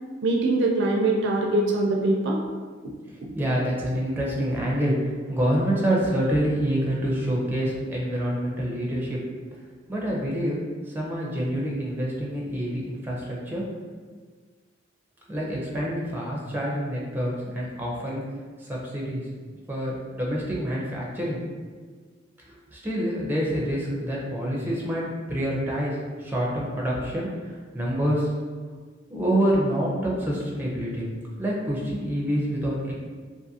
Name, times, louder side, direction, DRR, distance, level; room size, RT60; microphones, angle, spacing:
voice 1, 0.2-2.4 3.2-3.3, right 2 dB, 65° right, 0 dB, 0.4 m, -23 dB
voice 2, 3.3-9.2 9.9-13.7 15.3-18.2 18.6-19.2 19.7-21.5 22.5-25.0 25.3-28.3 29.1-31.1 31.4-32.9, equal, 10° right, -4 dB, 0.5 m, -27 dB
2.6 x 2.4 x 2.7 m, 1.5 s
head